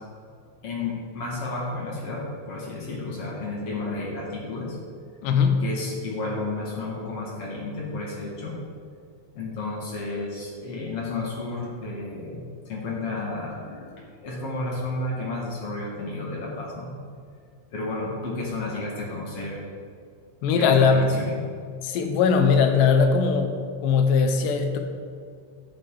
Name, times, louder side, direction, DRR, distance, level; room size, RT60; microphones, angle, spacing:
voice 1, 0.6-4.8 5.6-8.5 9.3-13.9 14.2-16.9 17.7-19.6 20.6-21.4, left 2 dB, 55° left, -4 dB, 1.8 m, -32 dB
voice 2, 5.2-5.6 20.4-21.2 21.8-24.8, left 5 dB, 75° left, 5 dB, 2.8 m, -20 dB
11.5 x 8.3 x 4.9 m, 2.2 s
omnidirectional pair, 5.4 m